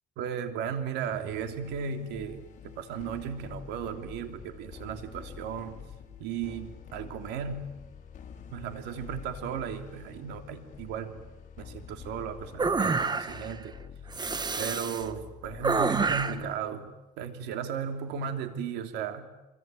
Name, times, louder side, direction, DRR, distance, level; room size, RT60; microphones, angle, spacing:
voice 1, 0.2-5.8 6.2-7.7 8.5-11.1 11.6-13.7 14.6-19.3, right 7 dB, 90° right, 7 dB, 3.2 m, -35 dB
sound 1, 1.3-16.7, left 7 dB, 50° left, 5.4 m, -47 dB
sound 2, 12.6-13.5 14.1-15.1 15.6-16.5, right 4 dB, 25° right, 1.6 m, -28 dB
25.0 x 23.5 x 9.2 m, 1.0 s
cardioid pair, 110°, 17 cm